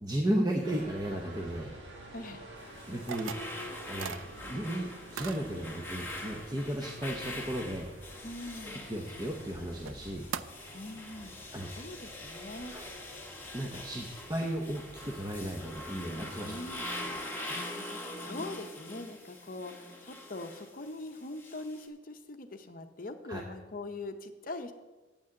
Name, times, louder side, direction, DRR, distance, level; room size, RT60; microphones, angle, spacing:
voice 1, 0.0-1.7 2.9-3.3 3.9-4.1 4.4-7.9 8.6-10.3 11.5-11.7 12.7-12.9 13.5-16.5 16.8-16.9 23.3-23.4, right 1 dB, 20° right, 0 dB, 0.7 m, -34 dB
sound 1, 0.6-17.2, right 1 dB, 65° right, 1.8 m, -51 dB
voice 2, 2.1-2.4 8.2-8.8 10.7-11.3 11.7-12.8 16.4-16.9 17.2-24.7, left 2 dB, 45° left, 7 dB, 0.7 m, -42 dB
sound 2, 2.6-21.9, left 1 dB, 10° left, 1.1 m, -44 dB
sound 3, 3.1-3.5 4.0-4.2 5.2-5.4 9.3-9.4 9.9-10.0 10.3-10.5, right 8 dB, 85° right, 0.4 m, -38 dB
8.7 x 6.2 x 7.5 m, 1.3 s
head